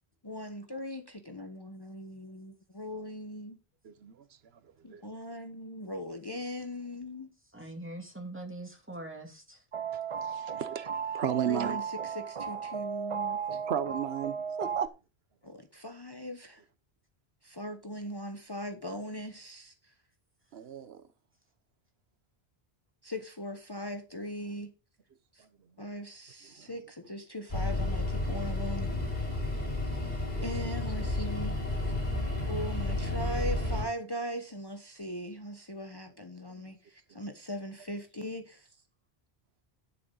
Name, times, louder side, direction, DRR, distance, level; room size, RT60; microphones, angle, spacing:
voice 1, 0.2-3.6 4.8-7.3 11.4-13.6 15.4-16.6 17.4-19.9 23.0-24.7 25.3-25.4 25.8-28.9 30.4-31.6 32.5-38.7, equal, 25° left, 1.0 m, -40 dB
voice 2, 7.5-9.6, right 1 dB, 10° right, 2.7 m, -42 dB
sound 1, 9.7-14.9, right 7 dB, 45° right, 0.5 m, -35 dB
voice 3, 10.3-11.8 13.7-14.9 20.5-21.0, right 9 dB, 80° right, 1.0 m, -33 dB
sound 2, 27.5-33.8, left 2 dB, 40° left, 4.9 m, -31 dB
12.5 x 6.9 x 3.8 m
omnidirectional pair, 1.0 m